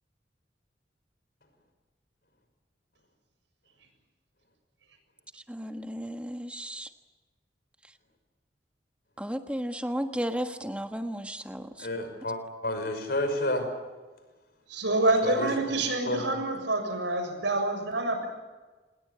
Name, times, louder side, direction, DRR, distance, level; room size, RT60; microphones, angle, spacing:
voice 1, 5.3-6.9 9.2-11.9, equal, 5° right, 6 dB, 1.4 m, -34 dB
voice 2, 11.8-13.6 15.2-15.5 16.1-16.2, left 1 dB, 55° left, 7 dB, 5.9 m, -30 dB
voice 3, 14.7-18.3, right 2 dB, 90° right, 5 dB, 6.9 m, -27 dB
28.0 x 20.5 x 8.6 m, 1.3 s
head